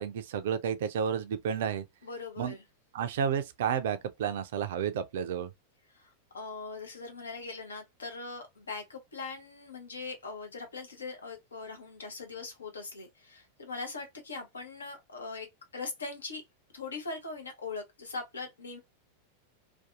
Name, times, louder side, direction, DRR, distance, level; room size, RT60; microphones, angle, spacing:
voice 1, 0.0-1.8 2.4-2.6 2.9-5.5, right 8 dB, 55° right, 0.3 m, -31 dB
voice 2, 2.0-2.6 5.9-16.4 16.7-18.8, left 4 dB, 70° left, 0.8 m, -41 dB
2.6 x 2.3 x 2.3 m
figure-of-eight pair, 90°, 0 cm